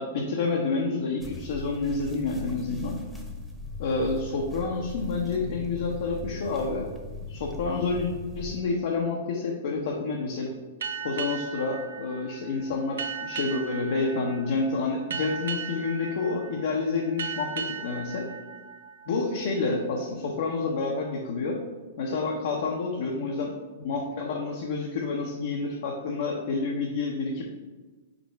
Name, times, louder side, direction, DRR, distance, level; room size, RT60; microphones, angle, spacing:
voice 1, 0.0-3.0 3.8-6.9 7.3-8.1 8.3-10.5 11.0-18.3 19.1-21.6 22.0-23.5 23.8-27.4, left 3 dB, 65° left, -1 dB, 0.9 m, -29 dB
sound 1, 1.2-8.6, left 3 dB, ahead, 1.0 m, -39 dB
sound 2, 10.8-20.0, right 6 dB, 80° right, 0.5 m, -37 dB
5.1 x 4.2 x 4.5 m, 1.3 s
hypercardioid pair, 120°, 0 cm